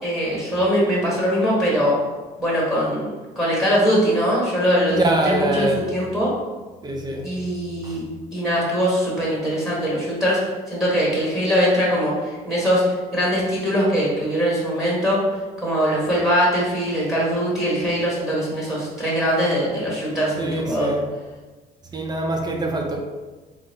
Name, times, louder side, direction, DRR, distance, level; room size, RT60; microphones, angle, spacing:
voice 1, 0.0-2.0 2.4-6.3 7.2-8.0 8.3-10.4 10.7-12.8 13.1-15.2 15.6-20.9, equal, ahead, -6 dB, 1.2 m, -21 dB
voice 2, 4.9-5.8 6.8-7.2 7.8-7.9 20.4-21.0 21.9-23.0, right 2 dB, 25° right, 2 dB, 0.6 m, -23 dB
3.9 x 2.0 x 3.9 m, 1.3 s
cardioid pair, 110°, 17 cm